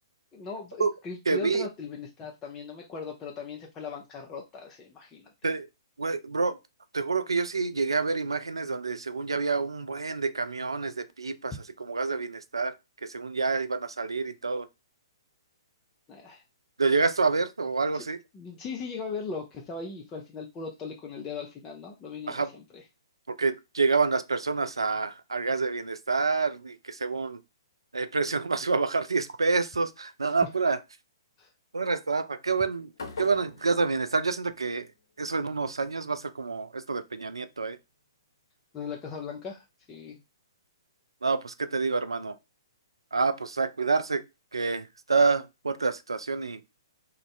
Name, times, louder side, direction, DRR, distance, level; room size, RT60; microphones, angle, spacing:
voice 1, 0.3-5.3 16.1-16.4 17.9-18.0 18.3-22.8 31.4-31.5 38.7-40.2, left 4 dB, 20° left, 0.4 m, -39 dB
voice 2, 1.3-1.7 5.4-5.7 6.0-6.6 6.9-12.7 13.0-14.7 16.8-18.2 22.3-22.5 23.3-27.4 27.9-30.8 31.7-32.9 33.2-34.9 35.2-37.8 41.2-42.4 43.1-44.2 44.5-46.6, right 4 dB, 85° right, 0.3 m, -28 dB
sound 1, 32.9-35.0, left 4 dB, 60° left, 0.9 m, -43 dB
2.5 x 2.3 x 3.0 m
figure-of-eight pair, 125°, 3 cm